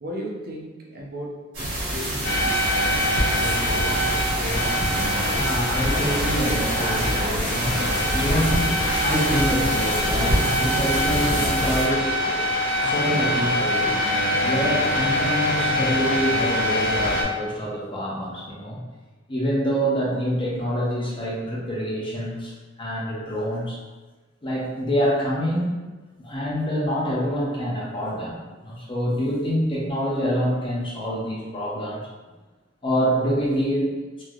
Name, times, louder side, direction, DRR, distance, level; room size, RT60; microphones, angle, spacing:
voice 1, 0.0-2.7, equal, 55° right, -1 dB, 0.6 m, -36 dB
sound 1, 1.5-11.9, equal, 75° right, 1.3 m, -27 dB
sound 2, 2.2-17.2, left 1 dB, 80° left, 0.7 m, -24 dB
voice 2, 5.2-18.8 19.3-23.8 24.4-25.7 26.2-32.0 32.8-34.2, equal, 30° left, -5 dB, 0.7 m, -26 dB
3.1 x 2.8 x 2.4 m, 1.2 s
head